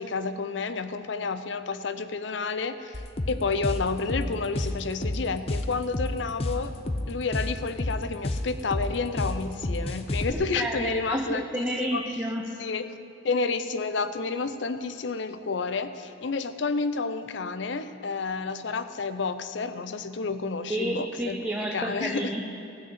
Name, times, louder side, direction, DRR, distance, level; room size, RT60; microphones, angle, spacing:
voice 1, 0.0-6.7 7.1-12.0 12.6-12.9 13.2-21.4 21.7-22.3, left 4 dB, 80° left, 11 dB, 0.6 m, -30 dB
sound 1, 2.9-10.3, left 1 dB, 35° left, 0.7 m, -30 dB
voice 2, 10.3-12.5 20.7-22.4, right 1 dB, 10° right, -1 dB, 0.7 m, -30 dB
16.0 x 6.4 x 8.1 m, 2.5 s
head